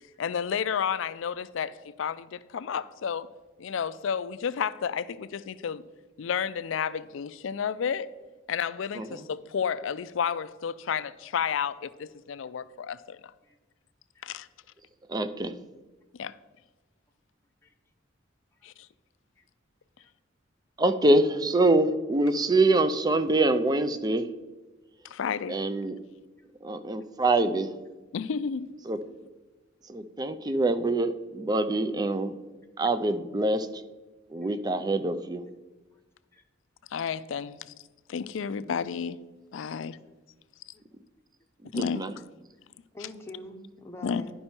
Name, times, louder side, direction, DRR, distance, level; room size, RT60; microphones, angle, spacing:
voice 1, 0.2-3.3 3.6-5.8 6.2-8.1 8.5-13.3 14.2-14.5 16.2-16.4 18.6-18.9 25.0-25.6 28.1-28.7 36.9-37.7 38.1-39.2 39.5-40.0 41.7-42.3 44.0-44.2, left 7 dB, 65° left, 0.4 m, -31 dB
voice 2, 15.1-15.5 20.8-24.3 25.5-26.0 26.6-27.7 28.9-29.0 29.9-32.3 32.8-33.7 34.3-35.4 41.7-42.1, right 2 dB, 20° right, 0.4 m, -25 dB
voice 3, 42.9-44.3, left 1 dB, 15° left, 0.8 m, -44 dB
11.0 x 5.5 x 4.4 m
head